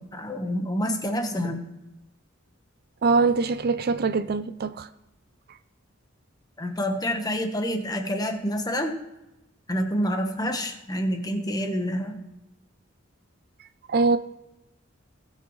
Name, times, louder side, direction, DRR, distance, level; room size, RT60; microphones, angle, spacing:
voice 1, 0.0-1.6 6.6-9.0 9.7-12.2, equal, 20° left, 5 dB, 1.2 m, -28 dB
voice 2, 3.0-4.9 13.9-14.2, right 4 dB, 50° right, 12 dB, 0.4 m, -23 dB
18.0 x 6.4 x 3.2 m, 0.97 s
head